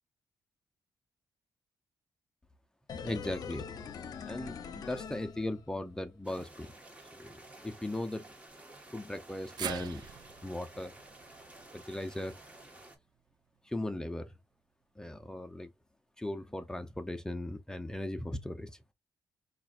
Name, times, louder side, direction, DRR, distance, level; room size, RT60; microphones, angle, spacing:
sound 1, 2.9-6.0 6.3-6.4, left 6 dB, 55° left, 0.7 m, -43 dB
voice 1, 3.0-3.7 4.3-6.7 7.2-8.3 8.9-10.0 10.4-10.9 11.7-12.3 13.6-14.3 15.0-15.7 16.2-18.7, left 1 dB, 10° left, 0.6 m, -38 dB
sound 2, 6.2-13.0, right 2 dB, 15° right, 1.4 m, -53 dB
sound 3, 9.6-13.8 14.2-14.3 15.5-15.6, right 10 dB, 65° right, 0.4 m, -45 dB
5.6 x 2.4 x 2.5 m
cardioid pair, 105°, 8 cm